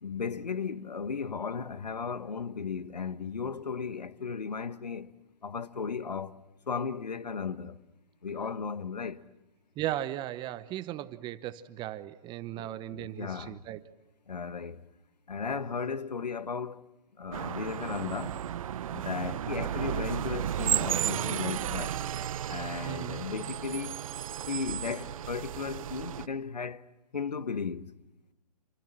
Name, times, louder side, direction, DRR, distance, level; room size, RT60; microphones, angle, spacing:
voice 1, 0.0-5.1 5.4-6.4 6.7-7.8 8.2-9.2 12.5-13.6 14.3-14.8 15.3-16.8 17.2-18.4 18.9-22.0 22.5-24.0 24.5-26.8 27.1-27.9, left 5 dB, 85° left, 1.3 m, -35 dB
voice 2, 9.8-13.8 22.8-23.2, right 13 dB, 20° right, 1.0 m, -37 dB
sound 1, 17.3-26.3, right 10 dB, 55° right, 0.9 m, -33 dB
28.5 x 25.5 x 7.6 m
hypercardioid pair, 130°, 21 cm